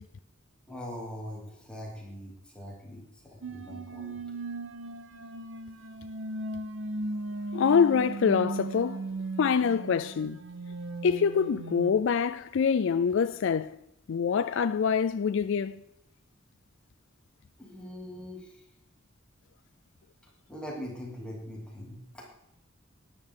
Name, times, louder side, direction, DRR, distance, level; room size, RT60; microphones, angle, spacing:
voice 1, 0.7-4.2 17.6-18.6 20.5-22.3, left 1 dB, 5° left, 2.7 m, -42 dB
sound 1, 3.4-11.9, right 2 dB, 65° right, 0.8 m, -37 dB
voice 2, 7.5-9.1 9.4-10.4 11.0-13.8 14.1-15.8, left 6 dB, 65° left, 0.4 m, -25 dB
13.0 x 10.5 x 3.7 m
head